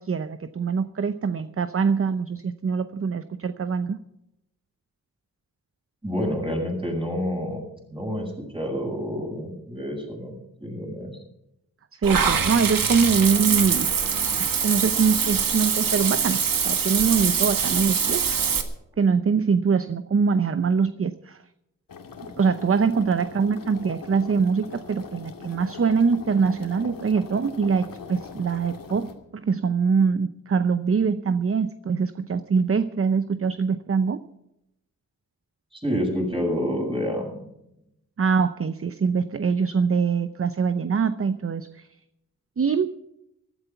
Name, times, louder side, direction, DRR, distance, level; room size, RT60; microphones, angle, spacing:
voice 1, 0.0-4.0 11.9-13.9 14.2-18.2 19.0-21.4 22.2-34.2 38.2-41.9 42.6-42.9, right 5 dB, 40° right, 11 dB, 0.7 m, -23 dB
voice 2, 6.0-7.6 7.9-11.2 35.7-37.4, equal, 15° right, 0 dB, 7.4 m, -28 dB
Water / Bathtub (filling or washing), 12.0-18.6, right 6 dB, 85° right, 1.7 m, -23 dB
sound 1, 21.9-29.1, left 5 dB, 85° left, 2.4 m, -41 dB
15.0 x 13.0 x 5.8 m, 0.83 s
wide cardioid pair, 75°, 33 cm